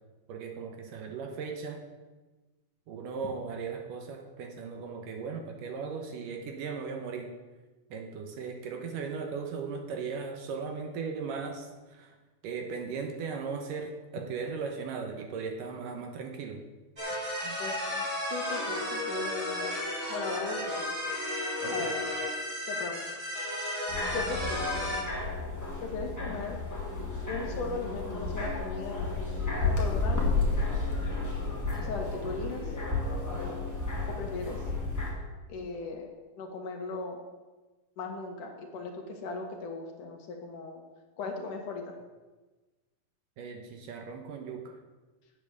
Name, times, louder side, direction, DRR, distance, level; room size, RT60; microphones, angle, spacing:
voice 1, 0.3-1.8 2.9-7.3 7.9-12.1 12.4-16.6 17.4-17.6 21.6-21.9 43.4-44.8, right 5 dB, 70° right, 4 dB, 2.5 m, -37 dB
sound 1, 17.0-25.0, left 1 dB, 20° right, 4.3 m, -33 dB
voice 2, 17.6-19.7 20.1-20.8 21.7-21.9 22.7-23.1 24.1-25.0 25.8-26.6 27.3-29.1 29.8-30.4 31.8-32.8 34.1-34.7 35.5-36.1 36.4-37.2 38.0-40.8 41.2-42.0, left 3 dB, 65° left, 2 dB, 2.7 m, -38 dB
sound 2, 23.9-35.1, left 3 dB, 5° left, 2.5 m, -32 dB
9.1 x 8.8 x 8.1 m, 1.2 s
omnidirectional pair, 4.3 m